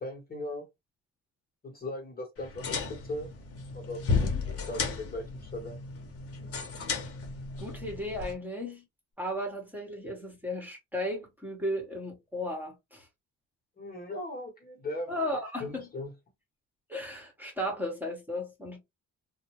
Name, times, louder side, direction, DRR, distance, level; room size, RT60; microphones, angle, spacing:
voice 1, 0.0-0.7 1.6-3.3 3.7-5.8 13.8-15.1 15.6-16.1, left 1 dB, 30° left, 1.1 m, -38 dB
sound 1, 2.4-8.3, left 4 dB, 50° left, 0.9 m, -34 dB
voice 2, 4.1-4.4 7.6-8.8 9.2-13.1 15.1-15.8 16.9-18.8, left 1 dB, 5° right, 1.0 m, -35 dB
2.6 x 2.0 x 2.9 m
cardioid pair, 90°, 30 cm